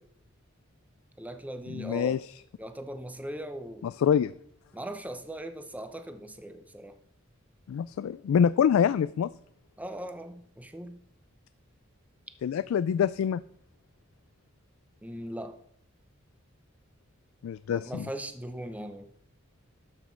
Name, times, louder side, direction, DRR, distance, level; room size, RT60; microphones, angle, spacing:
voice 1, 1.2-2.2 2.6-3.9 4.7-7.0 9.8-11.0 15.0-15.6 17.7-19.1, right 1 dB, 5° right, 8 dB, 0.7 m, -39 dB
voice 2, 1.7-2.2 4.0-4.3 7.7-9.3 12.4-13.4 17.4-18.1, left 8 dB, 85° left, 15 dB, 0.3 m, -25 dB
12.5 x 6.3 x 4.5 m, 0.66 s
head